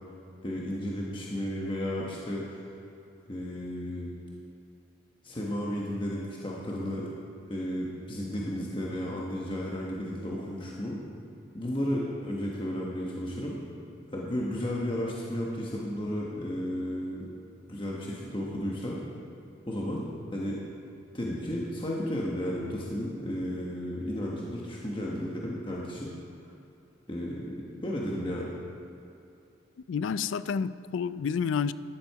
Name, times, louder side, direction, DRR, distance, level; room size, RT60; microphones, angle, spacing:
voice 1, 0.4-2.7 3.3-4.1 5.2-7.1 7.5-11.0 11.5-13.6 14.1-17.3 17.7-19.0 19.7-20.6 21.1-26.1 27.1-27.6 27.8-28.5, equal, 25° left, -4 dB, 1.1 m, -33 dB
voice 2, 29.9-31.7, left 6 dB, 80° left, 15 dB, 0.4 m, -29 dB
12.0 x 11.0 x 4.7 m, 2.7 s
head